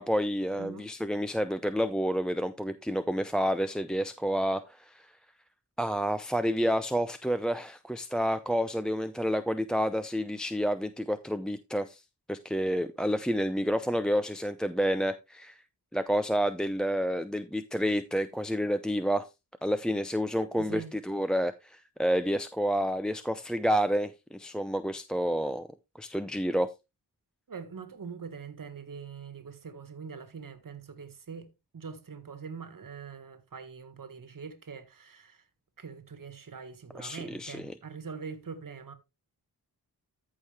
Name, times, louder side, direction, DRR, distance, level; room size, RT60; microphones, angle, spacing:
voice 1, 0.0-5.0 5.8-12.0 12.3-15.5 15.9-19.3 19.6-25.7 26.0-26.7 36.9-37.7, equal, ahead, 0.6 m, -29 dB
voice 2, 20.6-21.0 27.5-35.4 35.8-38.9, right 5 dB, 55° right, 1.6 m, -43 dB
14.0 x 4.8 x 3.4 m
wide cardioid pair, 75°, 40 cm